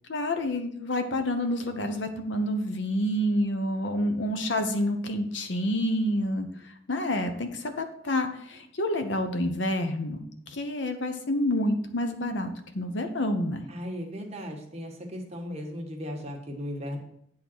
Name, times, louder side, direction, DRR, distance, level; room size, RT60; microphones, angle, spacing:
voice 1, 0.1-13.7, left 1 dB, 70° left, 7 dB, 0.9 m, -28 dB
voice 2, 13.7-17.0, equal, 35° right, 1 dB, 1.3 m, -36 dB
8.6 x 3.9 x 6.1 m, 0.69 s
head